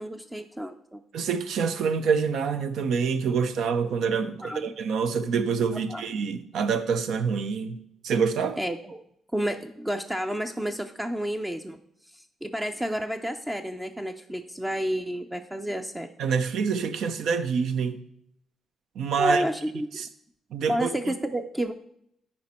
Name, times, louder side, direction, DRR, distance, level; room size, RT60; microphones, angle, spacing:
voice 1, 0.0-1.0 4.4-4.6 5.7-6.0 8.6-9.0 9.3-11.8 12.1-16.1 19.2-20.0 20.7-21.7, equal, 10° right, 0.5 m, -30 dB
voice 2, 1.1-7.8 8.0-8.6 16.2-18.0 19.0-19.4 20.0-20.1 20.5-20.9, right 6 dB, 75° right, 0.6 m, -26 dB
10.0 x 4.3 x 4.3 m
cardioid pair, 90°, 0 cm